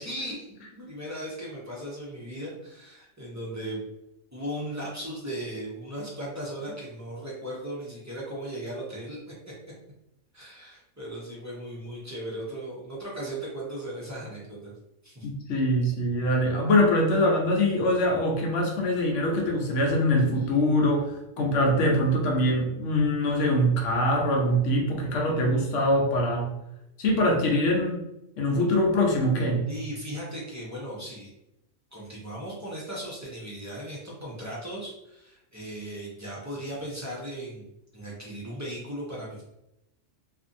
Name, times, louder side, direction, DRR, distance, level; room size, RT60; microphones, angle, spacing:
voice 1, 0.0-3.9 4.3-9.2 10.3-14.7 15.0-15.3 20.4-20.5 29.7-31.3 31.9-37.7 37.9-39.4, right 1 dB, 25° right, -6 dB, 0.3 m, -37 dB
voice 2, 15.2-26.5 27.0-28.0 28.4-29.7, left 1 dB, 70° left, 1 dB, 0.9 m, -23 dB
2.5 x 2.5 x 2.5 m, 0.86 s
omnidirectional pair, 1.4 m